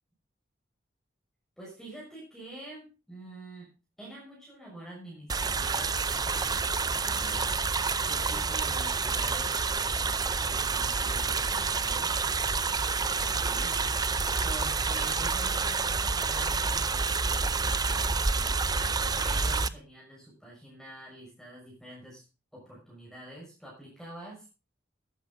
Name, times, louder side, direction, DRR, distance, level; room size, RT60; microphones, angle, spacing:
voice 1, 1.6-3.7 4.0-7.5 8.1-12.1 13.1-13.8 14.0-18.6 19.0-22.2 22.5-24.5, right 1 dB, ahead, -5 dB, 6.4 m, -47 dB
sound 1, 5.3-19.7, right 4 dB, 20° right, 0.6 m, -28 dB
13.5 x 11.5 x 3.9 m, 0.30 s
head